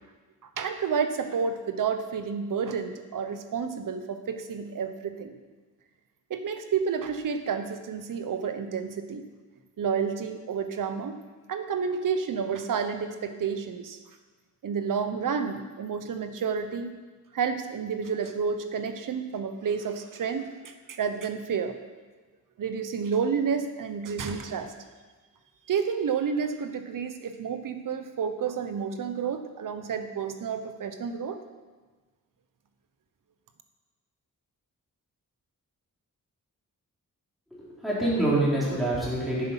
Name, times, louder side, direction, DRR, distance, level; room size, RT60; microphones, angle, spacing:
voice 1, 0.6-5.3 6.3-9.2 9.8-11.2 11.5-14.0 14.6-16.9 17.3-21.7 22.6-24.7 25.7-31.4, right 6 dB, 70° right, 8 dB, 1.0 m, -30 dB
voice 2, 37.5-39.5, right 1 dB, ahead, -8 dB, 3.8 m, -26 dB
10.0 x 7.5 x 5.8 m, 1.3 s
wide cardioid pair, 145°, 33 cm